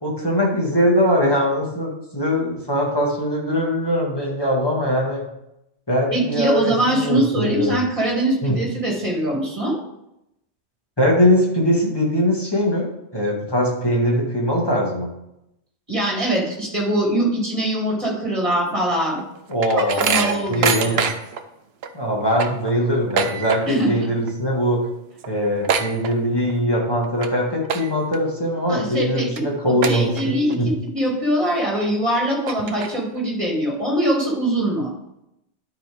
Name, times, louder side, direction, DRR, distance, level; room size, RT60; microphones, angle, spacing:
voice 1, 0.0-5.3 5.9-7.8 8.4-8.5 11.0-15.1 19.5-21.0 21.9-24.8 25.2-30.7, equal, 20° left, -2 dB, 1.9 m, -21 dB
voice 2, 6.1-9.8 15.9-19.2 19.7-21.1 23.7-24.1 28.7-34.9, right 1 dB, 30° right, -2 dB, 2.6 m, -23 dB
sound 1, 19.0-21.4 21.8-21.9 22.2-23.9 24.2-24.6 24.8-24.9 25.2-26.6 27.0-27.3 27.6-28.2 28.7-28.8 29.4-29.5 29.8-30.6 31.0-31.1 31.8-31.9 32.3-33.2, right 6 dB, 65° right, 0.9 m, -25 dB
11.5 x 5.1 x 3.6 m, 0.83 s
omnidirectional pair, 1.2 m